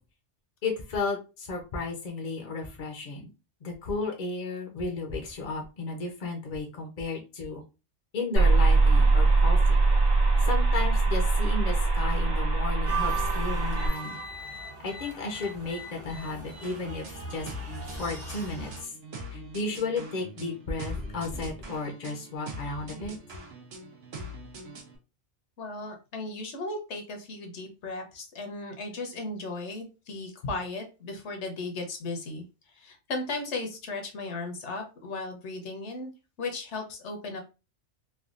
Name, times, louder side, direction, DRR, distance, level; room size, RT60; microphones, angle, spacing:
voice 1, 0.6-3.3 3.6-7.6 8.1-9.8 10.5-14.2 14.8-17.5 17.9-18.9 19.3-23.2, left 3 dB, 50° left, 1 dB, 0.6 m, -34 dB
sound 1, 8.4-13.9, right 3 dB, 50° right, 1.2 m, -22 dB
sound 2, 12.9-18.8, right 4 dB, 20° right, 0.5 m, -38 dB
sound 3, 16.6-25.0, right 1 dB, 65° right, 0.9 m, -43 dB
voice 2, 25.6-32.4 32.7-36.1 36.4-37.4, left 3 dB, 75° left, 4 dB, 1.1 m, -36 dB
3.3 x 2.2 x 2.4 m, 0.30 s
omnidirectional pair, 1.2 m